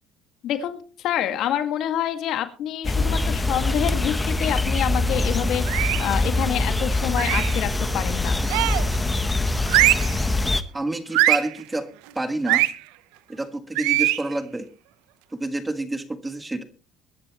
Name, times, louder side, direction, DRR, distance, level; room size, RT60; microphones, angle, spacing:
voice 1, 0.4-8.4, left 10 dB, 65° left, 8 dB, 1.9 m, -27 dB
sound 1, 2.8-10.6, left 2 dB, 15° left, 1.0 m, -24 dB
sound 2, 5.7-6.1 7.2-7.6 8.5-9.0 9.7-10.2 11.1-11.5 12.5-12.7 13.8-14.2, right 17 dB, 90° right, 0.9 m, -21 dB
voice 2, 10.7-11.9 12.1-12.7 13.3-14.7 15.3-16.6, right 2 dB, 15° right, 9 dB, 1.6 m, -28 dB
22.0 x 11.0 x 3.1 m, 0.36 s
cardioid pair, 110°, 0 cm